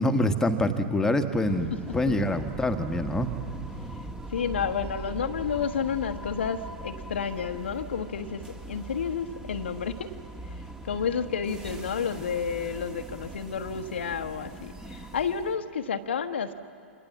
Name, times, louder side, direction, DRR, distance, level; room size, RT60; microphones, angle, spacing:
voice 1, 0.0-3.3, left 1 dB, 10° left, 7 dB, 1.5 m, -25 dB
sound 1, 1.4-15.6, right 2 dB, 10° right, 1.6 m, -41 dB
voice 2, 4.3-10.1 10.6-16.5, left 6 dB, 65° left, 8 dB, 1.2 m, -31 dB
28.0 x 25.0 x 7.3 m, 2.5 s
figure-of-eight pair, 100°, 7 cm